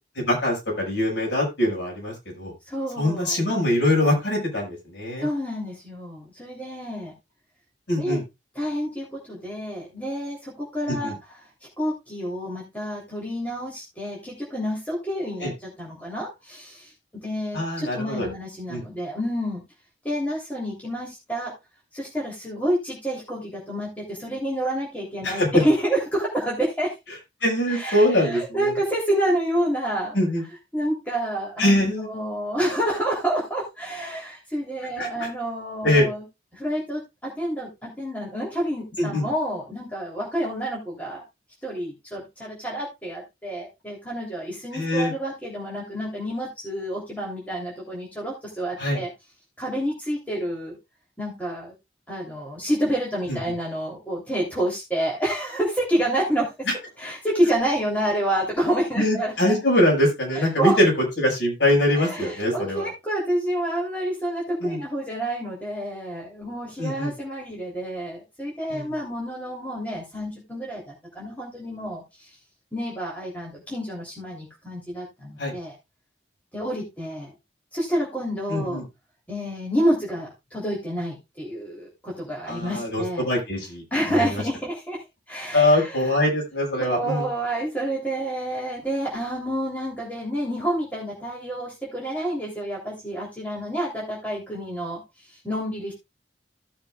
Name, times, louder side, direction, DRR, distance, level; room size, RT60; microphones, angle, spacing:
voice 1, 0.2-2.5 3.0-5.3 7.9-8.2 10.9-11.1 15.4-15.5 17.5-18.3 18.7-18.8 25.2-25.6 27.4-28.7 30.1-30.4 31.6-32.1 35.0-35.3 35.8-36.1 39.0-39.3 44.7-45.1 48.8-49.0 53.3-53.4 56.7-56.8 59.0-62.9 64.6-64.8 66.8-67.1 68.7-68.9 75.4-75.5 78.5-78.8 82.5-83.8 84.2-84.4 85.5-87.3, left 1 dB, 75° left, -1 dB, 5.9 m, -23 dB
voice 2, 2.6-3.4 5.2-7.1 8.0-8.2 8.5-11.1 11.8-16.9 17.2-19.6 20.0-21.5 21.9-26.9 27.7-30.1 30.7-36.2 36.5-41.2 41.6-49.1 49.6-50.7 51.2-51.7 52.1-56.7 57.0-59.6 60.3-60.8 61.9-72.3 72.7-75.7 76.5-77.3 77.7-78.8 79.3-83.2 83.9-86.1 86.8-95.0 95.3-95.9, right 1 dB, 10° left, -4 dB, 3.3 m, -28 dB
16.0 x 7.1 x 2.4 m, 0.23 s
head